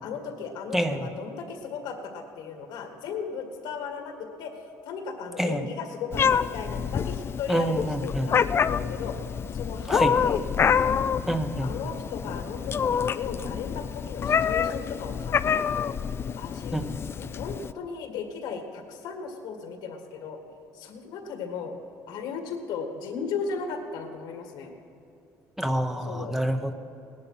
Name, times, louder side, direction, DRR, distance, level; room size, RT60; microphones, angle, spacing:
voice 1, 0.0-9.2 9.5-10.9 11.6-16.0 16.4-16.8 17.2-20.4 20.7-21.7 22.1-24.7 26.0-26.4, left 5 dB, 85° left, 4 dB, 2.0 m, -36 dB
Meow, 6.1-17.7, left 7 dB, 35° left, 0.4 m, -27 dB
voice 2, 7.5-8.3 9.9-10.1 11.3-11.7 16.7-16.8 25.6-26.7, right 1 dB, 5° right, 7 dB, 0.8 m, -27 dB
18.0 x 10.5 x 5.8 m, 2.7 s
cardioid pair, 120°, 7 cm